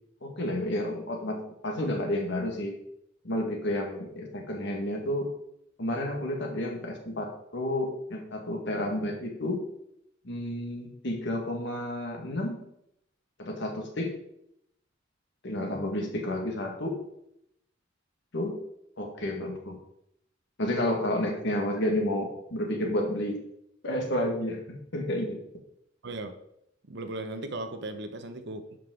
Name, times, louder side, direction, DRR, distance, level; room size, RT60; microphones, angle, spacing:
voice 1, 0.2-2.7 3.2-5.3 5.8-9.6 10.2-12.6 13.4-14.1 15.4-17.0 18.3-18.6 19.0-19.8 20.6-23.4 23.8-25.4, left 1 dB, 65° left, 2 dB, 1.8 m, -31 dB
voice 2, 26.0-26.3 26.9-28.8, right 2 dB, 65° right, 8 dB, 1.0 m, -37 dB
11.0 x 5.4 x 3.8 m, 0.77 s
head